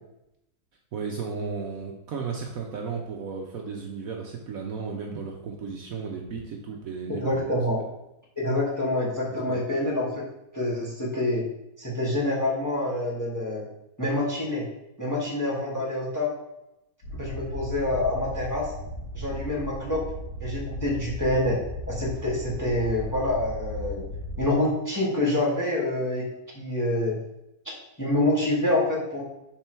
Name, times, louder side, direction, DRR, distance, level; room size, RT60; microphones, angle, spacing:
voice 1, 0.9-7.6 9.3-9.6, right 5 dB, 65° right, 0 dB, 1.0 m, -34 dB
voice 2, 7.1-7.8 8.4-10.2 10.5-11.4 11.8-13.6 14.0-14.6 15.0-16.3 17.2-18.7 19.1-20.0 20.4-21.6 21.9-24.0 24.4-26.2 26.5-27.2 28.0-29.2, left 1 dB, 10° left, -4 dB, 1.1 m, -26 dB
sound 1, 17.0-24.5, left 1 dB, 50° left, 1.5 m, -36 dB
6.0 x 3.7 x 4.4 m, 0.87 s
omnidirectional pair, 1.9 m